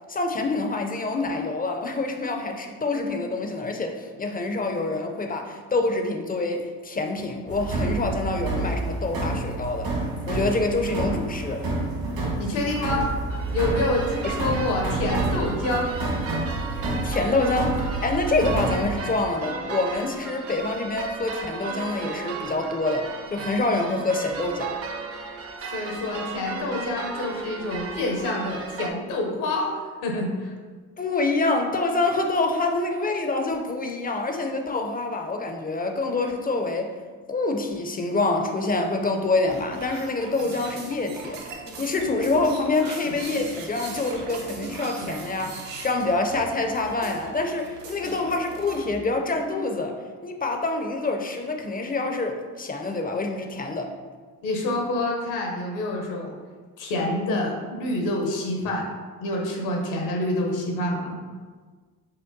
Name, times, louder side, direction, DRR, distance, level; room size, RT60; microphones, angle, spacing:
voice 1, 0.1-9.9 10.3-11.7 14.2-14.3 16.8-24.7 31.0-36.9 37.3-53.9, left 2 dB, 20° left, 3 dB, 0.4 m, -26 dB
sound 1, 7.5-19.0, right 2 dB, 65° right, 1.4 m, -29 dB
voice 2, 12.4-13.1 13.5-16.0 25.7-29.7 30.0-30.5 54.4-56.3 56.8-58.9 59.2-61.2, left 2 dB, 75° left, 0 dB, 0.9 m, -27 dB
sound 2, 13.3-28.9, right 4 dB, 35° right, 0.5 m, -35 dB
sound 3, 39.5-48.9, right 3 dB, 80° right, 0.7 m, -38 dB
5.1 x 2.1 x 2.6 m, 1.5 s
hypercardioid pair, 55°, 46 cm